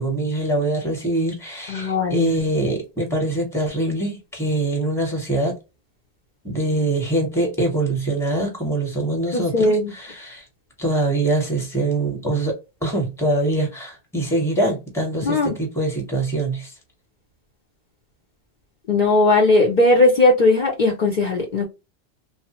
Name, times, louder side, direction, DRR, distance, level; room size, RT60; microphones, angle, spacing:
voice 1, 0.0-5.6 6.4-10.4 10.8-16.7, right 2 dB, 5° left, 0.9 m, -23 dB
voice 2, 1.7-2.3 9.3-9.9 15.3-15.5 18.9-21.7, left 2 dB, 55° left, 0.7 m, -18 dB
3.0 x 2.0 x 2.8 m
omnidirectional pair, 1.1 m